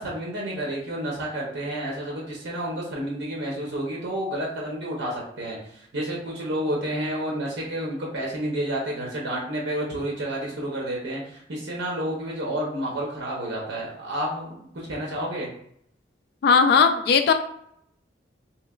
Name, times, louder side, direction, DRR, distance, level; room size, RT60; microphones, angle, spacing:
voice 1, 0.0-15.5, right 1 dB, 75° right, -3 dB, 0.7 m, -30 dB
voice 2, 16.4-17.3, left 5 dB, 60° left, 7 dB, 0.3 m, -17 dB
3.1 x 2.8 x 2.3 m, 0.70 s
head